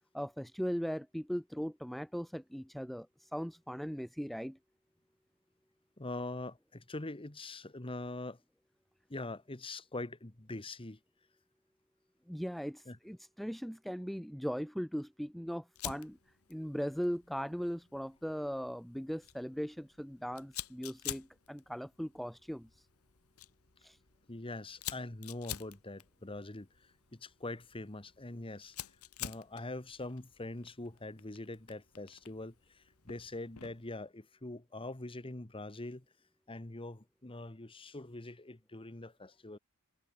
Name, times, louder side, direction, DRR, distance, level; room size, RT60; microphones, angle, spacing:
voice 1, 0.1-4.6 12.3-16.2 16.5-22.9 23.8-24.0, equal, ahead, 0.5 m, -39 dB
voice 2, 6.0-8.4 9.1-11.0 12.9-13.0 24.3-26.7 27.1-28.7 29.2-36.0 36.5-39.6, left 2 dB, 25° left, 1.4 m, -43 dB
Fire, 15.7-33.9, left 11 dB, 70° left, 2.2 m, -49 dB
head